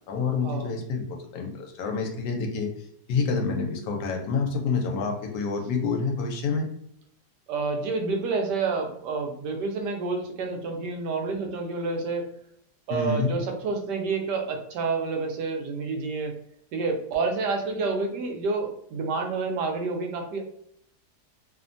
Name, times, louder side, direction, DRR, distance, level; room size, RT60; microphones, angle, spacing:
voice 1, 0.1-2.7 3.1-6.7 12.9-13.3, left 4 dB, 90° left, 2 dB, 1.3 m, -28 dB
voice 2, 7.5-12.3 12.9-16.4 16.7-20.4, right 4 dB, 80° right, 3 dB, 1.2 m, -29 dB
3.2 x 2.1 x 2.5 m, 0.69 s
omnidirectional pair, 1.8 m